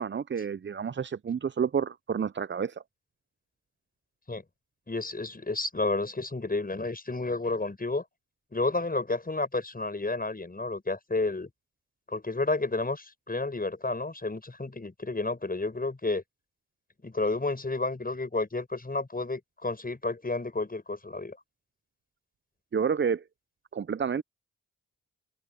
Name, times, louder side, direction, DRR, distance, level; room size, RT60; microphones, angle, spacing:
voice 1, 0.0-2.8 22.7-23.2 23.7-24.2, right 6 dB, 35° right, 0.7 m, -29 dB
voice 2, 4.9-8.0 8.5-11.5 12.1-16.2 17.0-21.4, left 3 dB, 25° left, 6.7 m, -31 dB
supercardioid pair, 45°, 32 cm